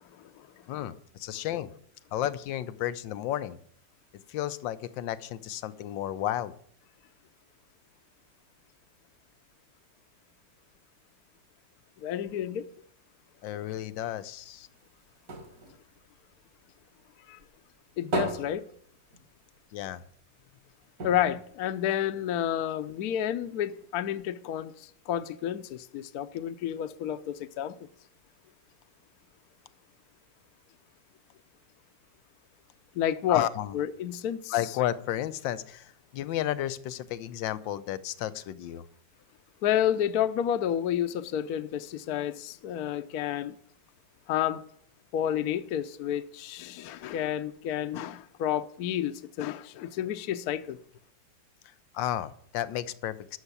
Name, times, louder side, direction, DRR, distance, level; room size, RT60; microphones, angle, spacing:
voice 1, 0.7-1.7 2.1-3.6 4.3-6.5 13.4-14.7 19.7-20.0 33.3-33.7 34.5-38.8 51.9-53.4, left 12 dB, 90° left, 1.4 m, -32 dB
voice 2, 12.0-12.7 17.3-17.4 18.0-18.7 21.0-27.7 33.0-33.5 33.7-34.5 39.6-43.5 44.3-44.6 45.1-50.8, left 10 dB, 65° left, 1.0 m, -30 dB
sound 1, 14.4-17.0 17.4-19.6 20.0-20.1 20.4-20.5 21.0-22.5 23.1-23.2, right 2 dB, 50° right, 2.5 m, -38 dB
13.0 x 6.6 x 8.2 m
omnidirectional pair, 2.0 m